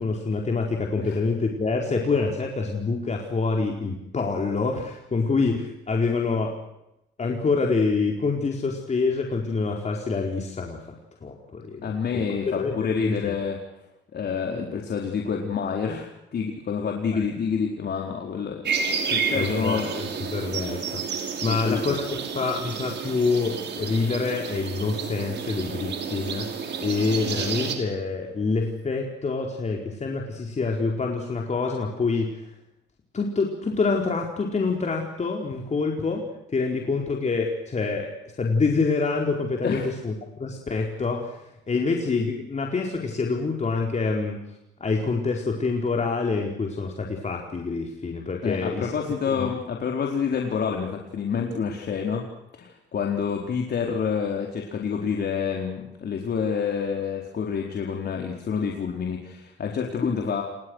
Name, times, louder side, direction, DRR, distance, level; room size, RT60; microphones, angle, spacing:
voice 1, 0.0-6.5 7.2-10.9 11.2-11.8 12.1-12.2 12.5-13.4 19.3-21.0 21.4-26.5 26.8-32.5 33.1-44.4 44.8-48.9 49.3-49.5, left 4 dB, 35° left, 1 dB, 4.6 m, -26 dB
voice 2, 11.8-13.6 14.1-19.9 21.5-22.0 39.6-39.9 48.4-52.2 52.5-60.4, left 6 dB, 55° left, 1 dB, 4.4 m, -28 dB
sound 1, 18.7-27.8, right 6 dB, 60° right, 6.2 m, -30 dB
29.0 x 23.0 x 6.5 m, 0.88 s
cardioid pair, 90°, 20 cm